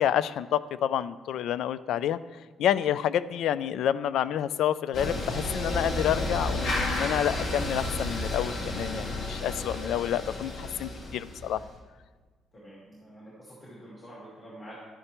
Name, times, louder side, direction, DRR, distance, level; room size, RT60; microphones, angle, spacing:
voice 1, 0.0-2.2 2.6-11.6, left 10 dB, 70° left, 16 dB, 0.3 m, -28 dB
sound 1, 4.9-11.8, left 1 dB, 50° left, 1.7 m, -32 dB
voice 2, 12.5-14.8, right 1 dB, 30° left, -7 dB, 2.5 m, -47 dB
11.0 x 9.8 x 3.0 m, 1.4 s
cardioid pair, 170°, 0 cm